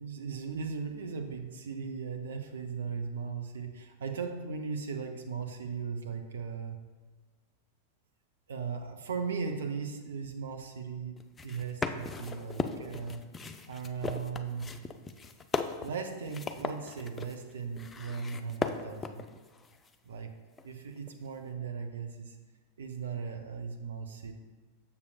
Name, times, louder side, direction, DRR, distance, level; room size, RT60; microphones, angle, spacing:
voice 1, 0.0-6.8 8.5-11.2 11.4-13.2 13.7-14.7 15.8-19.2 20.1-20.3 20.6-22.4 22.8-24.4, right 5 dB, 65° right, 4 dB, 0.5 m, -37 dB
sound 1, 11.2-20.0 20.6-21.2, left 4 dB, 20° left, 0.3 m, -37 dB
6.8 x 6.5 x 2.4 m, 1.3 s
figure-of-eight pair, 90°, 0 cm